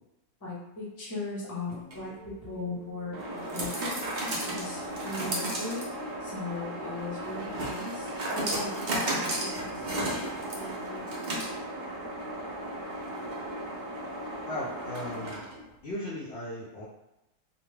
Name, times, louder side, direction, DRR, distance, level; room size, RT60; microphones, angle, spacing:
voice 1, 0.4-4.0 4.5-5.9 6.2-10.3 10.5-11.1, left 3 dB, 25° left, -7 dB, 0.4 m, -38 dB
sound 1, 1.7-15.7, right 1 dB, 80° right, 0.4 m, -34 dB
voice 2, 14.5-15.4 15.8-16.8, left 1 dB, 60° left, -7 dB, 0.7 m, -36 dB
2.7 x 2.2 x 3.2 m, 0.94 s
omnidirectional pair, 1.6 m